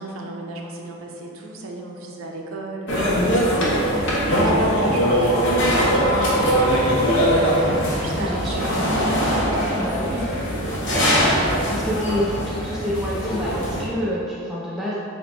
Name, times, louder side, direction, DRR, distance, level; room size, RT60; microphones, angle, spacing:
voice 1, 0.0-7.2 8.0-11.9, right 2 dB, 85° right, 1 dB, 0.5 m, -35 dB
sound 1, 2.9-13.8, equal, 60° left, 0.8 m, -21 dB
sound 2, 5.3-9.1, left 1 dB, 40° left, 1.1 m, -31 dB
voice 2, 8.2-8.7 9.7-10.3 11.7-15.0, equal, ahead, -8 dB, 0.3 m, -27 dB
4.1 x 2.2 x 4.1 m, 2.4 s
head